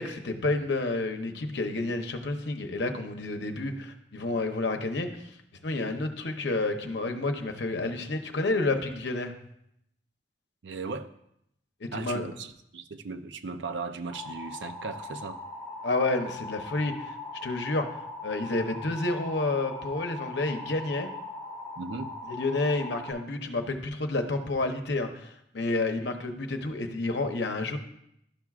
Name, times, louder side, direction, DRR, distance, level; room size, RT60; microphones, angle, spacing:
voice 1, 0.0-5.1 5.6-9.3 11.8-12.3 15.8-17.1 17.4-17.9 18.2-21.1 22.3-27.8, left 2 dB, 70° left, 5 dB, 0.8 m, -30 dB
voice 2, 10.6-11.1 11.9-15.4 21.8-22.1, right 4 dB, 75° right, 10 dB, 0.5 m, -37 dB
sound 1, 14.1-23.1, left 2 dB, 5° right, 2.2 m, -40 dB
12.0 x 5.9 x 2.4 m, 0.76 s
head